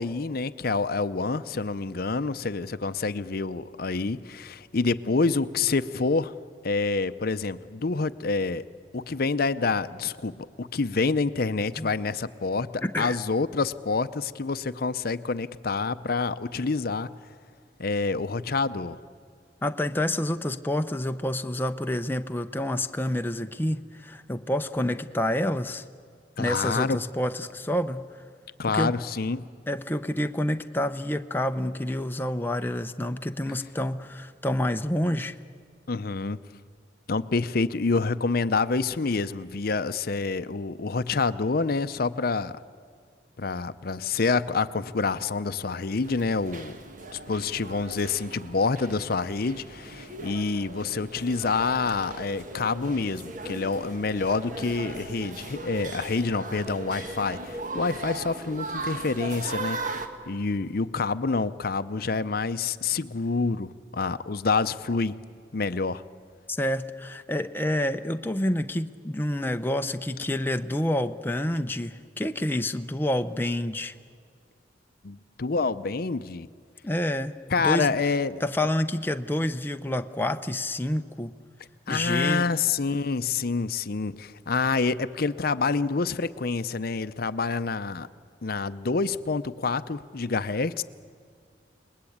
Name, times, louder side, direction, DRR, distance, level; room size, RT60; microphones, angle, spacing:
voice 1, 0.0-6.3 6.6-8.6 8.9-17.1 17.8-19.0 26.4-27.0 28.6-29.5 35.9-36.4 37.1-42.6 43.4-46.8 47.1-65.2 65.5-66.0 75.0-76.5 77.5-78.4 81.9-88.1 88.4-90.8, left 4 dB, 55° left, 13 dB, 0.7 m, -27 dB
voice 2, 12.8-13.2 19.6-25.8 26.4-28.2 28.7-28.9 29.7-35.4 66.5-73.9 76.8-78.0 78.4-81.3 81.9-82.5, left 1 dB, 10° left, 6 dB, 0.6 m, -28 dB
sound 1, 46.0-60.1, right 2 dB, 45° right, 1.7 m, -38 dB
29.5 x 20.0 x 8.6 m, 2.1 s
head